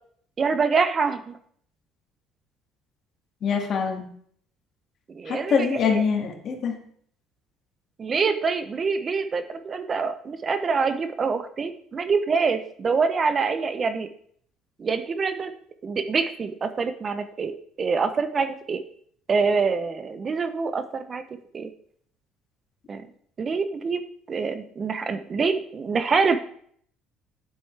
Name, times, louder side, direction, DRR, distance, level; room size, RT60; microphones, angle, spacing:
voice 1, 0.4-1.4 5.1-6.0 8.0-14.1 14.8-15.5 15.8-17.5 17.8-18.8 19.3-21.2 21.5-21.7 22.9-23.1 23.4-24.0 24.3-26.4, right 5 dB, 30° right, 10 dB, 0.6 m, -25 dB
voice 2, 3.4-4.0 5.3-6.8, left 6 dB, 50° left, 2 dB, 1.9 m, -24 dB
9.2 x 7.6 x 3.3 m, 0.62 s
cardioid pair, 115°, 0 cm